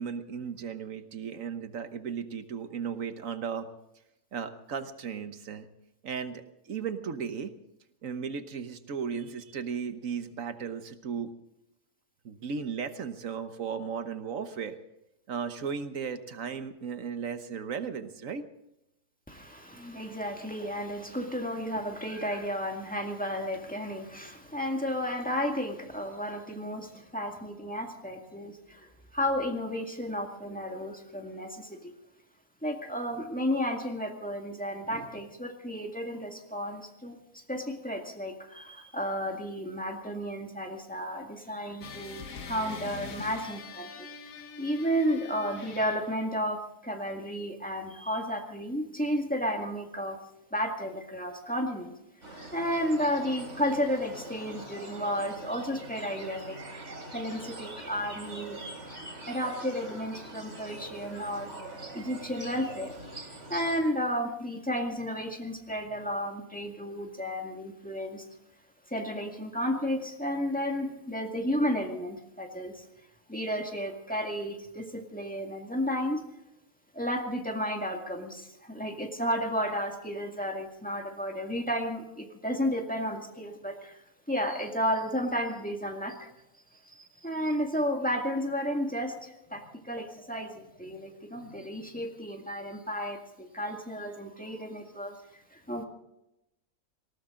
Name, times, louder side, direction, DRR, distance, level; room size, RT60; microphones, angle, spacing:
voice 1, 0.0-3.7 4.3-5.7 6.0-7.5 8.0-11.3 12.2-14.8 15.3-18.4, right 6 dB, 75° right, 10 dB, 1.5 m, -35 dB
voice 2, 19.3-31.9 32.6-42.2 42.5-44.1 44.6-50.2 50.5-51.9 52.5-56.8 57.1-58.6 59.3-61.5 61.9-68.3 68.9-72.8 73.3-76.2 76.9-84.0 84.3-86.3 86.9-95.2 95.5-95.8, equal, 5° left, 2 dB, 1.9 m, -32 dB
sound 1, 41.8-46.3, left 5 dB, 80° left, 1.7 m, -43 dB
sound 2, 52.2-63.8, right 2 dB, 60° right, 3.8 m, -43 dB
19.0 x 18.5 x 3.8 m, 0.86 s
omnidirectional pair, 1.4 m